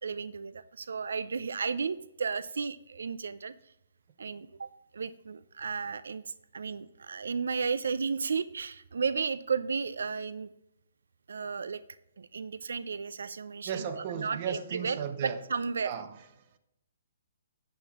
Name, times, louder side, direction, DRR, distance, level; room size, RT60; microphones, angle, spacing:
voice 1, 0.0-3.5 4.2-10.5 11.3-11.8 12.2-15.9, right 5 dB, 90° right, 0.4 m, -34 dB
voice 2, 13.6-15.4 15.8-16.1, right 8 dB, 30° right, 0.7 m, -35 dB
8.9 x 7.1 x 3.5 m
hypercardioid pair, 175°, 0 cm